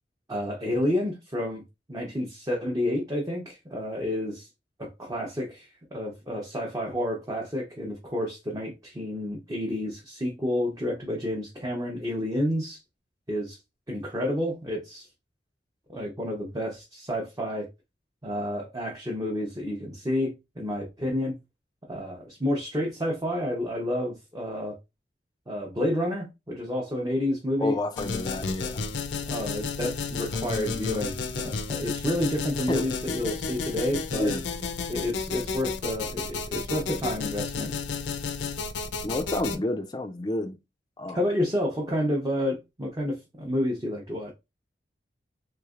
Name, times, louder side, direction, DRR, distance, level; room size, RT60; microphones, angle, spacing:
voice 1, 0.3-1.6 1.9-4.5 4.8-12.8 13.3-13.6 13.9-15.1 15.9-17.7 18.2-21.4 21.9-24.8 25.5-27.7 29.3-34.3 34.9-37.7 41.1-44.3, left 1 dB, 20° right, 0.7 m, -30 dB
voice 2, 27.6-28.8 32.7-32.9 34.2-34.4 39.0-40.6 41.0-41.2, left 1 dB, 20° left, 0.4 m, -29 dB
sound 1, 27.9-39.6, left 4 dB, 85° left, 0.5 m, -32 dB
3.5 x 3.1 x 2.4 m
head